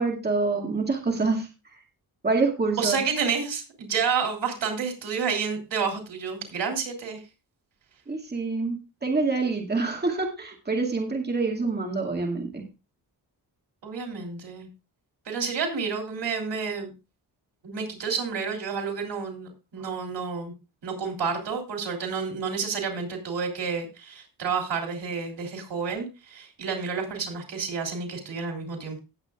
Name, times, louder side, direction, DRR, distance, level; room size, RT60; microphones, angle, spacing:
voice 1, 0.0-1.5 2.2-3.0 8.1-12.7, right 3 dB, 25° right, 1 dB, 2.3 m, -26 dB
voice 2, 2.8-7.2 13.8-14.7 15.2-16.9 17.6-20.5 20.8-29.0, right 5 dB, 90° right, 3 dB, 3.5 m, -30 dB
18.0 x 7.9 x 2.5 m, 0.28 s
wide cardioid pair, 120°, 42 cm